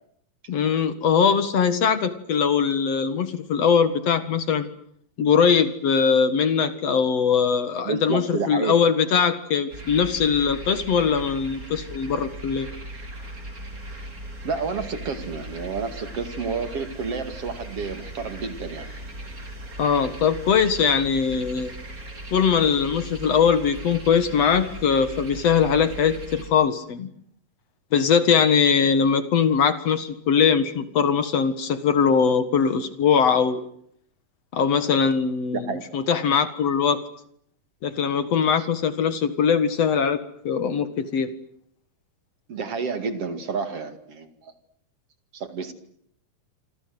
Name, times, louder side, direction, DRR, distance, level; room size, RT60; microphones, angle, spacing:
voice 1, 0.5-4.6 5.2-12.7 19.8-21.7 22.3-27.1 27.9-33.6 34.5-37.0 37.8-41.3, left 6 dB, 60° left, 12 dB, 2.7 m, -21 dB
voice 2, 7.8-8.8 14.4-18.9 35.5-35.9 38.6-38.7 42.5-44.5 45.3-45.7, right 5 dB, 50° right, 10 dB, 3.1 m, -30 dB
sound 1, 9.7-26.5, right 1 dB, 25° right, 4.7 m, -38 dB
27.5 x 25.5 x 8.0 m, 0.68 s
omnidirectional pair, 3.5 m